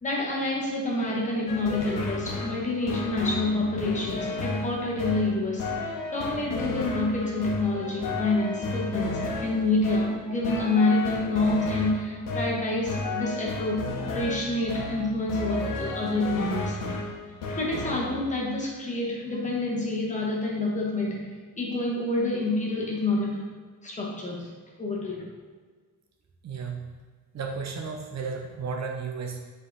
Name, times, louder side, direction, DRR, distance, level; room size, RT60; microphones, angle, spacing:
voice 1, 0.0-13.8 14.1-16.8 17.6-21.3 21.6-23.4 23.8-24.5 24.8-25.2, left 2 dB, 20° left, -4 dB, 1.5 m, -27 dB
sound 1, 1.5-18.2, left 3 dB, 75° left, 1.1 m, -33 dB
voice 2, 26.4-26.9 27.3-29.4, right 5 dB, 55° right, 2 dB, 0.8 m, -34 dB
7.2 x 3.9 x 4.0 m, 1.5 s
cardioid pair, 140°, 32 cm